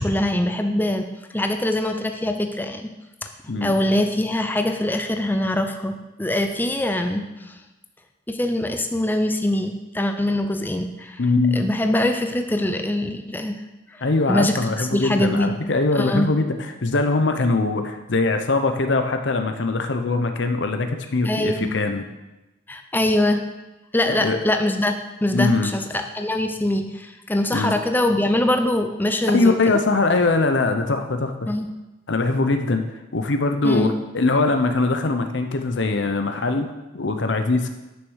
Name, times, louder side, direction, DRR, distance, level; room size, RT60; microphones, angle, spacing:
voice 1, 0.0-2.9 3.2-7.6 8.3-11.2 11.5-13.6 13.9-15.5 15.9-16.3 21.2-21.7 22.7-23.4 23.9-24.9 25.2-29.8 31.5-31.7 33.6-33.9, left 1 dB, 10° left, 5 dB, 0.6 m, -23 dB
voice 2, 11.2-11.6 14.0-22.0 24.1-24.4 25.3-25.7 27.5-27.7 29.3-31.5 32.1-32.8 33.1-37.7, left 3 dB, 65° left, 7 dB, 0.8 m, -22 dB
9.6 x 6.4 x 6.3 m, 1.0 s
head